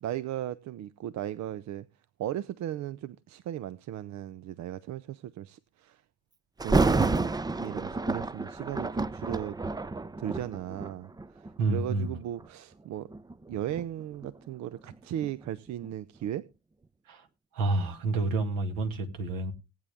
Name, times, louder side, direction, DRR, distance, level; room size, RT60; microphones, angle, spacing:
voice 1, 0.0-1.9 2.2-6.0 6.6-7.3 7.6-9.6 10.2-11.4 11.7-13.1 13.5-16.5, right 12 dB, 50° right, 0.7 m, -36 dB
Thunder, 6.6-11.6 12.2-12.5 13.1-15.9 16.2-16.3, right 3 dB, 10° right, 0.6 m, -30 dB
voice 2, 11.6-12.1 17.1-17.3 17.5-19.5, right 2 dB, 65° right, 2.2 m, -29 dB
18.0 x 9.1 x 3.5 m
figure-of-eight pair, 45°, 36 cm